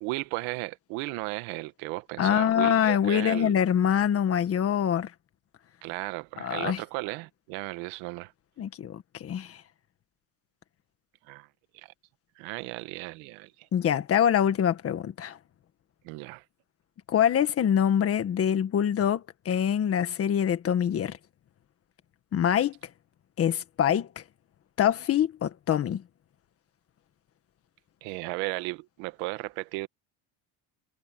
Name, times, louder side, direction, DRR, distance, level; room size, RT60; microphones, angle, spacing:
voice 1, 0.0-3.6 5.8-8.3 11.3-11.5 11.7-11.9 12.4-13.5 16.0-16.4 28.0-29.9, right 22 dB, 80° right, 1.4 m, -35 dB
voice 2, 2.2-5.1 6.4-6.8 8.6-9.6 13.7-15.4 17.1-21.2 22.3-22.7 23.4-24.1 24.8-26.0, left 9 dB, 30° left, 1.6 m, -25 dB
cardioid pair, 165°, 45 cm